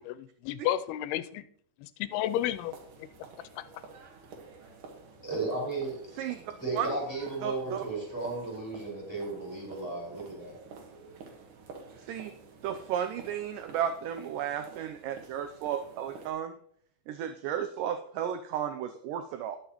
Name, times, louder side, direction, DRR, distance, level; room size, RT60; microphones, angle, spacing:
voice 1, 0.0-1.4 1.8-3.1 3.5-3.6, left 13 dB, 90° left, 13 dB, 2.5 m, -32 dB
sound 1, 2.1-16.3, right 4 dB, 65° right, 2.8 m, -50 dB
voice 2, 5.2-6.2 6.6-10.6, right 3 dB, 5° left, -4 dB, 4.8 m, -35 dB
voice 3, 7.4-7.8 12.0-12.3 12.6-16.5 17.1-19.6, right 9 dB, 85° right, 8 dB, 1.9 m, -33 dB
18.5 x 6.8 x 3.0 m, 0.63 s
omnidirectional pair, 4.4 m